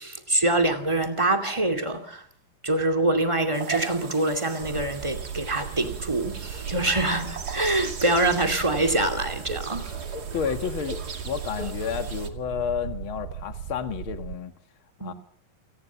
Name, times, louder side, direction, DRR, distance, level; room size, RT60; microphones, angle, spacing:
voice 1, 0.0-2.2 2.6-9.9 15.0-15.1, right 2 dB, 15° right, 1.1 m, -25 dB
sound 1, 3.5-12.3, right 4 dB, 35° right, 1.7 m, -38 dB
sound 2, 4.6-14.4, right 9 dB, 70° right, 3.2 m, -37 dB
voice 2, 10.3-11.0 11.2-14.5 15.0-15.1, left 7 dB, 50° left, 1.7 m, -30 dB
28.5 x 19.0 x 7.4 m
omnidirectional pair, 4.9 m